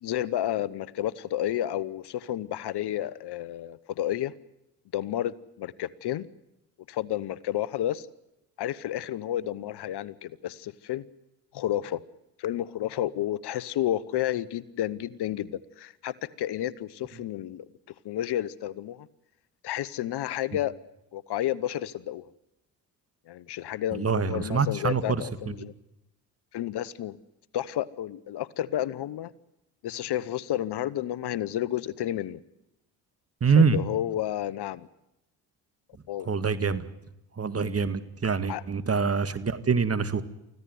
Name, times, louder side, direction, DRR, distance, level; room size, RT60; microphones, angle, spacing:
voice 1, 0.0-4.3 4.9-6.3 6.9-8.1 8.6-11.0 11.5-12.0 12.4-17.7 18.0-19.1 19.6-20.7 21.1-22.3 23.3-25.7 26.5-27.2 27.5-29.3 29.8-32.4 33.6-34.9 36.1-36.3 38.5-38.6, left 12 dB, 65° left, 19 dB, 1.1 m, -31 dB
voice 2, 23.9-25.5 33.4-33.8 36.3-36.9 37.4-40.2, right 5 dB, 35° right, 12 dB, 2.1 m, -25 dB
24.5 x 15.5 x 9.5 m, 0.90 s
supercardioid pair, 60°, 44 cm